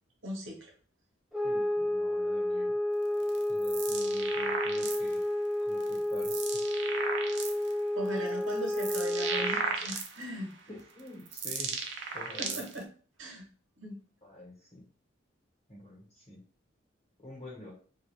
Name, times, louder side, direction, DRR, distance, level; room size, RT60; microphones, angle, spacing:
voice 1, 0.2-0.7 7.9-10.5 12.4-12.8 13.2-13.5 13.8-14.0, equal, 85° right, 0 dB, 0.9 m, -39 dB
sound 1, 1.3-9.7, left 1 dB, ahead, 0.3 m, -31 dB
voice 2, 1.4-2.7 3.5-5.2 5.6-6.6 10.7-11.8 12.1-12.6 14.2-14.9 15.7-16.4 17.2-17.7, left 2 dB, 35° left, -3 dB, 1.0 m, -48 dB
sound 2, 3.2-5.2 5.8-7.7 8.3-10.4 11.0-12.8, right 5 dB, 65° right, 0.5 m, -35 dB
2.3 x 2.3 x 3.1 m, 0.42 s
head